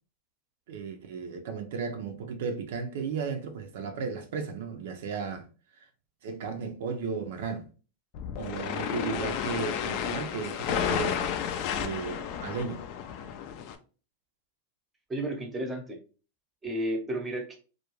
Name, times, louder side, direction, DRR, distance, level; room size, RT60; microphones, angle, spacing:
voice 1, 0.7-5.5 5.7-5.8 6.2-7.7 8.4-11.3 11.8-12.8, right 5 dB, 70° right, 0.5 m, -35 dB
sound 1, 8.1-13.7, left 8 dB, 50° left, 0.4 m, -32 dB
voice 2, 15.1-16.0 16.6-17.6, right 1 dB, 15° right, 0.8 m, -32 dB
2.4 x 2.2 x 3.0 m
hypercardioid pair, 125°, 0 cm